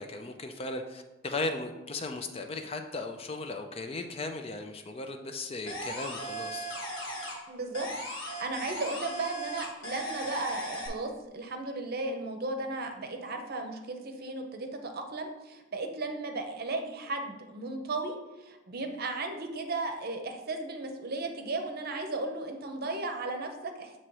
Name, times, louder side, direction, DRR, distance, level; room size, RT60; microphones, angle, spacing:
voice 1, 0.0-6.7, left 2 dB, 30° left, 5 dB, 0.4 m, -36 dB
sound 1, 5.7-7.5 7.7-10.9, right 1 dB, 60° left, 1.5 m, -37 dB
voice 2, 7.5-7.9 8.2-24.0, right 2 dB, 50° right, 5 dB, 0.7 m, -35 dB
7.3 x 2.9 x 4.7 m, 1.1 s
head